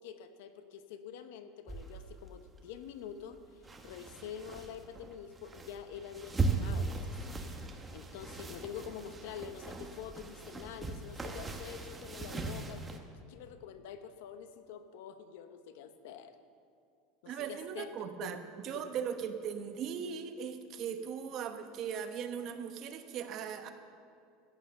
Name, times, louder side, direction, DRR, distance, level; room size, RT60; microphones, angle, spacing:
voice 1, 0.0-7.4 7.9-13.0 13.3-16.4 17.2-17.9 18.2-18.9, left 8 dB, 75° left, 9 dB, 0.9 m, -47 dB
sound 1, 1.7-13.0, right 3 dB, 15° right, 1.0 m, -39 dB
voice 2, 17.3-18.4 18.6-23.7, right 7 dB, 40° right, 7 dB, 1.0 m, -38 dB
14.0 x 9.1 x 6.8 m, 2.3 s
supercardioid pair, 155°, 0 cm